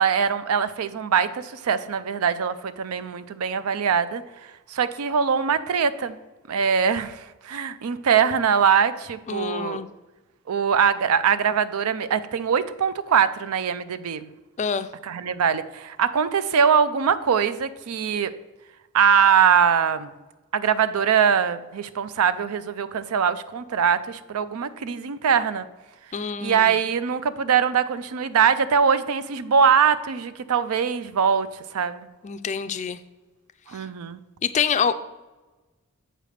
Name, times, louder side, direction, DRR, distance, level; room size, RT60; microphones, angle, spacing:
voice 1, 0.0-4.2 4.7-6.2 6.5-9.8 10.5-14.3 15.0-18.3 18.9-20.1 20.5-25.7 26.4-31.5 31.7-32.1 33.7-34.2, right 7 dB, 80° right, 14 dB, 0.4 m, -22 dB
voice 2, 9.3-9.9 14.6-14.9 26.1-26.8 32.2-33.0 33.7-33.8 34.4-34.9, left 6 dB, 35° left, 11 dB, 0.4 m, -26 dB
7.5 x 3.4 x 6.4 m, 1.1 s
head